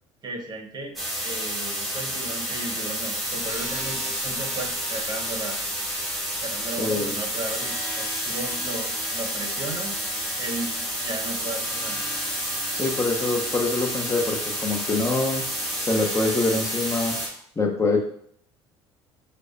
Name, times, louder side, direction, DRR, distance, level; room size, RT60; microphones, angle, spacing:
voice 1, 0.2-0.9 1.2-5.6 6.4-10.0 10.4-12.0, right 2 dB, 30° right, 2 dB, 1.1 m, -35 dB
sound 1, 1.0-17.3, equal, ahead, 1.6 m, -29 dB
voice 2, 6.8-7.1 12.7-15.5 15.8-17.2 17.6-18.0, left 3 dB, 20° left, 1 dB, 1.0 m, -24 dB
6.4 x 2.3 x 2.6 m, 0.64 s
hypercardioid pair, 70°, 14 cm